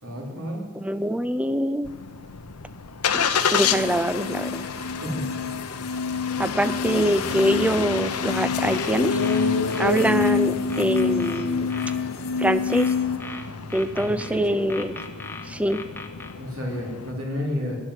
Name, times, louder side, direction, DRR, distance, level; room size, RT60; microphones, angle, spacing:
voice 1, 0.0-0.6 4.9-5.4 14.0-14.6 16.4-17.8, left 1 dB, 65° right, -1 dB, 3.3 m, -31 dB
voice 2, 0.7-1.9 3.1-4.6 6.4-9.2 9.8-11.7 12.4-12.9 13.7-14.9 15.4-15.8, equal, 5° right, 14 dB, 0.4 m, -24 dB
Engine starting, 1.8-17.1, left 5 dB, 90° left, 0.8 m, -30 dB
sound 1, 3.4-13.2, left 5 dB, 45° left, 1.1 m, -28 dB
sound 2, 8.7-10.3 10.7-12.0 12.7-14.3 14.7-16.3, left 3 dB, 10° left, 0.8 m, -38 dB
11.0 x 8.8 x 8.1 m, 1.5 s
head